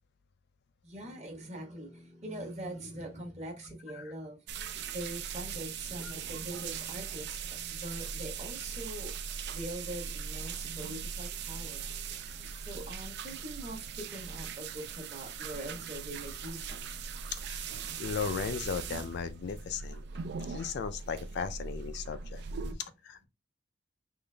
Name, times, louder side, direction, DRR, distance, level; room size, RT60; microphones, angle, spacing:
voice 1, 0.8-4.4 4.8-9.1 9.5-11.8 12.4-16.8 22.6-22.8, right 1 dB, 35° right, 1.1 m, -43 dB
sound 1, 4.5-22.7, right 6 dB, 55° right, 0.4 m, -40 dB
voice 2, 17.3-17.6 18.0-20.0 20.5-22.4 22.8-23.2, left 6 dB, 55° left, 0.4 m, -36 dB
3.8 x 2.5 x 3.2 m
head